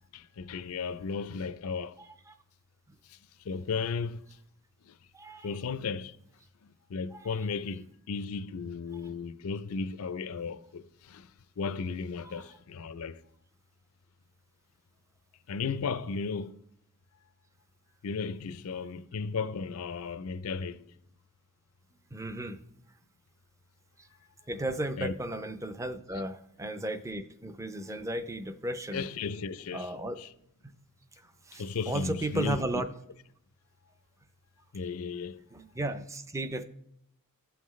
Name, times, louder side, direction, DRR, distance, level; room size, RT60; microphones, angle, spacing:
voice 1, 0.1-2.0 3.1-3.2 3.4-4.2 4.8-5.0 5.4-6.2 6.6-13.2 15.5-16.6 18.0-20.9 25.0-25.2 26.1-26.2 28.9-30.3 31.5-32.6 34.7-35.4, left 5 dB, 75° left, 0.5 m, -35 dB
voice 2, 2.0-2.3 2.9-3.0 5.1-5.5 7.1-7.2 12.3-12.4 22.1-22.6 24.0-24.1 24.5-29.1 29.7-30.2 30.6-30.7 31.1-32.9 35.5-36.6, right 1 dB, 15° right, 0.4 m, -35 dB
16.5 x 5.8 x 3.1 m
head